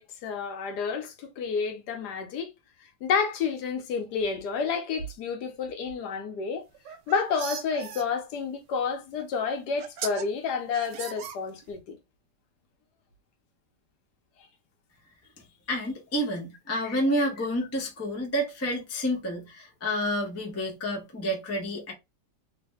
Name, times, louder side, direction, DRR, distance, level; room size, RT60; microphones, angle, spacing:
voice 1, 0.0-2.5 2.8-6.6 7.1-12.0 16.7-17.0, left 5 dB, 75° left, 1.3 m, -30 dB
sound 1, 6.7-8.0 9.2-9.3 9.8-10.2 10.7-11.8, right 8 dB, 90° right, 1.2 m, -38 dB
voice 2, 15.7-21.9, equal, 20° left, 0.4 m, -29 dB
3.2 x 2.1 x 3.4 m
omnidirectional pair, 1.8 m